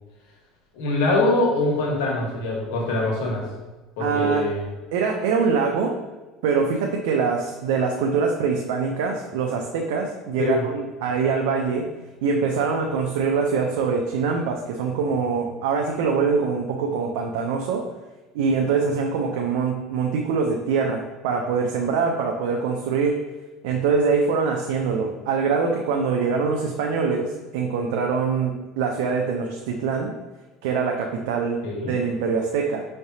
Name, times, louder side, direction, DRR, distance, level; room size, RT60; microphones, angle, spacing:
voice 1, 0.7-3.4 4.0-4.6 10.4-10.6 31.6-32.0, left 2 dB, 85° left, -1 dB, 1.3 m, -23 dB
voice 2, 4.0-4.4 4.9-6.0 6.4-11.9 12.2-17.8 18.3-23.2 23.6-30.1 30.6-31.6 31.9-32.8, right 5 dB, 85° right, 1 dB, 0.5 m, -24 dB
5.6 x 3.3 x 2.7 m, 1.2 s
cardioid pair, 145°, 0 cm